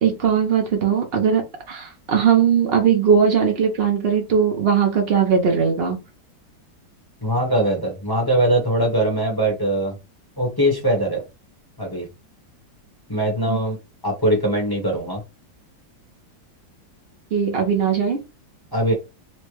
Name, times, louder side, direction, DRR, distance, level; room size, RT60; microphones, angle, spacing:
voice 1, 0.0-6.0 13.5-13.6 17.3-18.2, right 7 dB, 85° right, 3 dB, 0.5 m, -19 dB
voice 2, 7.2-9.9 10.4-11.2 11.8-12.1 13.1-13.8 14.0-15.2 18.7-18.9, right 1 dB, 15° left, -1 dB, 0.8 m, -21 dB
4.3 x 2.1 x 3.1 m, 0.26 s
omnidirectional pair, 2.1 m